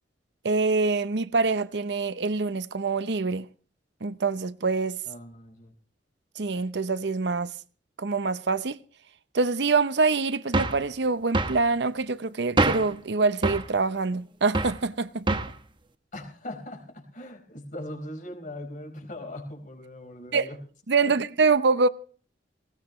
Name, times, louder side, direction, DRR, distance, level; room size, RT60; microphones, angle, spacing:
voice 1, 0.4-3.5 4.0-5.0 6.4-7.5 8.0-8.8 9.3-15.4 20.3-20.5 20.9-21.9, right 4 dB, 70° right, 0.8 m, -25 dB
voice 2, 5.0-5.7 16.1-20.6 21.0-21.1, left 1 dB, 45° left, 4.6 m, -40 dB
sound 1, 10.5-10.9 11.3-11.6 12.6-13.0 13.4-13.7 14.5-14.8 15.3-15.6, right 2 dB, 25° right, 1.0 m, -25 dB
19.0 x 17.5 x 3.2 m
head